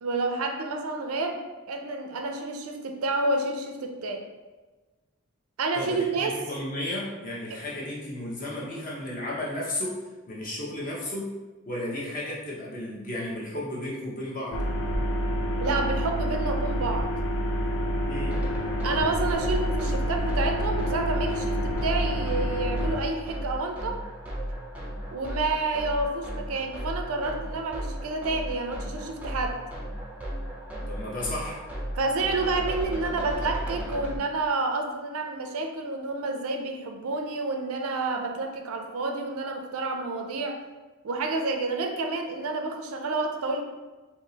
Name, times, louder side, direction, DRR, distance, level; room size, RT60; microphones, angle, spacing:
voice 1, 0.0-1.4 1.7-4.3 5.6-6.4 7.5-7.6 15.6-17.1 18.8-24.0 25.1-29.6 32.0-40.6 41.0-43.6, right 3 dB, 80° right, 4 dB, 0.4 m, -29 dB
voice 2, 5.7-10.0 10.3-14.6 18.0-18.4 30.9-31.6, left 1 dB, 40° left, -4 dB, 0.8 m, -33 dB
sound 1, 14.5-23.0, equal, 60° left, 0.4 m, -28 dB
sound 2, 18.3-34.2, equal, 5° right, 0.5 m, -35 dB
3.6 x 2.8 x 2.8 m, 1.2 s
head